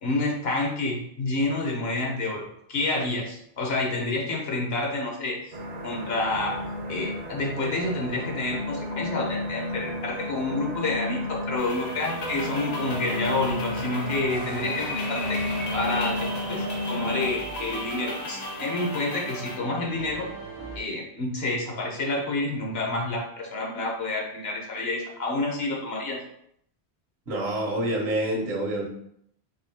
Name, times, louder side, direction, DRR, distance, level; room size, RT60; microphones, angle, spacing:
voice 1, 0.0-5.4 5.8-6.5 6.9-15.4 15.7-20.3 20.8-26.2, left 2 dB, 70° left, -1 dB, 1.1 m, -29 dB
sound 1, 5.5-17.3, left 1 dB, 50° right, 0.6 m, -33 dB
sound 2, 11.6-19.6, left 2 dB, 45° left, 0.7 m, -36 dB
sound 3, 12.0-20.8, right 4 dB, 85° left, 1.8 m, -39 dB
voice 2, 27.3-28.9, right 1 dB, 70° right, -1 dB, 1.2 m, -27 dB
4.1 x 2.8 x 2.8 m, 0.71 s
omnidirectional pair, 1.1 m